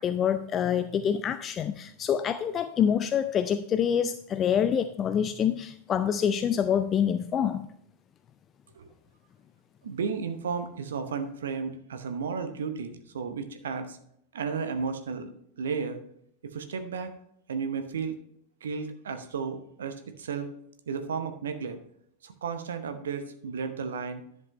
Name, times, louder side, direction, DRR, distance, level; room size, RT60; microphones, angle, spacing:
voice 1, 0.0-7.7, left 8 dB, 25° left, 11 dB, 0.4 m, -26 dB
voice 2, 9.8-14.0 14.3-15.3 15.6-16.0 16.4-17.1 17.5-18.2 18.6-20.5 20.9-21.8 22.2-24.2, right 5 dB, 65° right, 8 dB, 0.9 m, -33 dB
10.5 x 7.5 x 3.1 m, 0.71 s
figure-of-eight pair, 90°, 0 cm